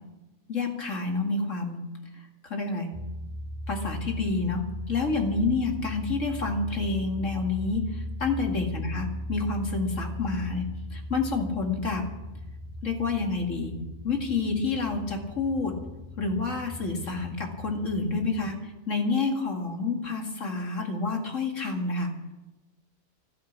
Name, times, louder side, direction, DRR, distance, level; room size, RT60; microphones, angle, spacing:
voice 1, 0.5-1.8 2.1-2.9 3.7-10.7 10.9-12.0 12.8-13.7 14.0-15.8 16.2-22.1, left 3 dB, 55° left, 2 dB, 2.5 m, -29 dB
sound 1, 2.9-18.5, left 1 dB, 5° right, 1.6 m, -38 dB
15.0 x 12.5 x 7.4 m, 1.0 s
omnidirectional pair, 1.6 m